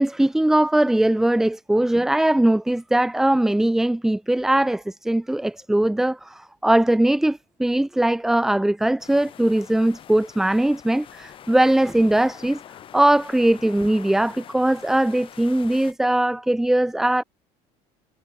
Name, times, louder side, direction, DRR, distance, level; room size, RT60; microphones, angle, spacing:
voice 1, 0.0-12.6 12.9-17.2, right 1 dB, 5° right, 0.4 m, -20 dB
sound 1, 9.0-15.9, left 10 dB, 40° left, 2.4 m, -45 dB
cardioid pair, 145°, 14 cm